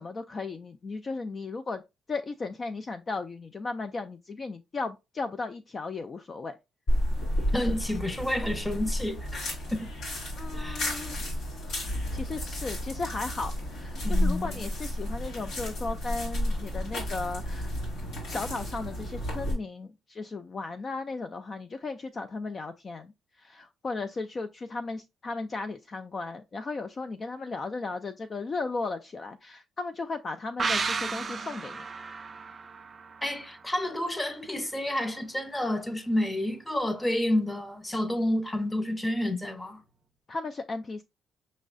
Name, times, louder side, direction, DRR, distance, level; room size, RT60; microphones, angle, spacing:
voice 1, 0.0-1.8 2.1-6.6 10.4-11.2 11.6-17.7 18.3-23.1 23.4-31.9 40.3-41.0, left 3 dB, 40° left, 0.3 m, -36 dB
sound 1, 6.9-19.5, equal, 80° left, 2.1 m, -31 dB
voice 2, 7.5-9.4 9.7-9.9 10.5-10.9 14.0-14.7 33.2-39.8, left 1 dB, 15° left, 0.7 m, -30 dB
sound 2, 30.6-34.1 34.4-34.5, right 4 dB, 35° right, 0.4 m, -33 dB
5.3 x 3.1 x 2.5 m
cardioid pair, 90°, 0 cm